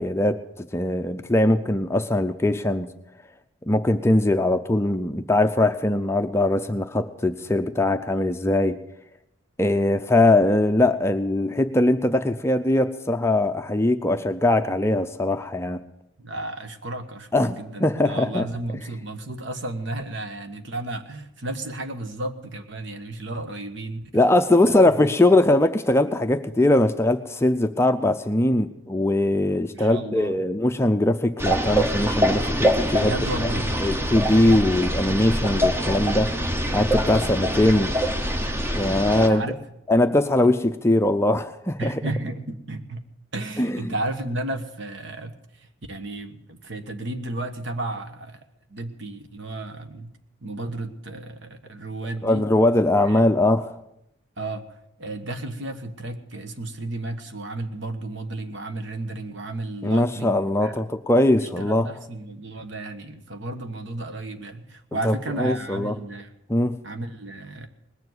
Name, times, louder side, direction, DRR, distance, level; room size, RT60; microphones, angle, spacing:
voice 1, 0.0-2.9 3.7-8.8 9.6-15.8 17.3-18.5 24.1-33.1 33.8-36.3 36.7-37.9 38.8-39.4 39.9-42.0 43.6-43.9 52.2-53.7 59.8-61.9 65.0-65.9 66.5-66.8, left 1 dB, 15° left, 7 dB, 0.5 m, -21 dB
voice 2, 16.2-24.1 24.6-24.7 25.0-25.1 29.7-30.3 33.0-33.7 38.9-39.6 41.8-43.1 43.3-48.4 48.7-50.1 50.4-52.5 53.0-53.2 54.4-54.7 55.0-60.9 61.4-66.3 66.8-67.7, right 2 dB, 65° right, 7 dB, 1.3 m, -33 dB
sound 1, 31.4-39.3, equal, 10° right, 0.8 m, -24 dB
19.5 x 7.2 x 7.9 m, 0.81 s
head